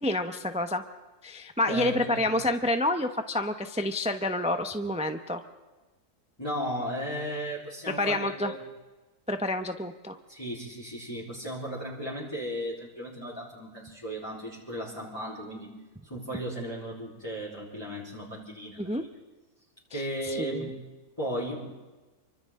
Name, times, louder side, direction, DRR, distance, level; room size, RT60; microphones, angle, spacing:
voice 1, 0.0-0.8 1.2-5.4 7.9-8.5 9.3-10.2 18.8-19.0 19.9-20.7, left 1 dB, 5° right, 7 dB, 0.7 m, -29 dB
voice 2, 1.7-2.3 6.4-8.6 10.3-15.7 16.0-19.1 19.9-20.8 21.2-21.7, equal, 15° left, -7 dB, 3.9 m, -35 dB
29.5 x 24.5 x 3.8 m, 1.2 s
omnidirectional pair, 1.6 m